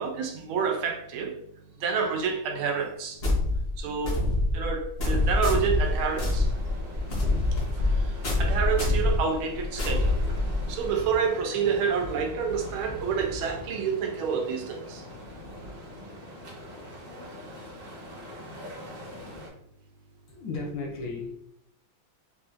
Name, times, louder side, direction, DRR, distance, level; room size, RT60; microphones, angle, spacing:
voice 1, 0.0-1.4 1.8-3.2 3.8-4.2 4.5-6.5 7.5-10.2 10.7-15.0 17.3-17.7, right 6 dB, 80° right, 3 dB, 1.4 m, -29 dB
sound 1, 3.2-10.9, left 2 dB, 45° left, 0.8 m, -26 dB
sound 2, 5.1-19.5, equal, 40° right, 0.9 m, -42 dB
voice 2, 20.3-21.3, left 4 dB, 70° left, 0 dB, 1.3 m, -34 dB
4.3 x 2.3 x 2.4 m, 0.70 s
omnidirectional pair, 2.3 m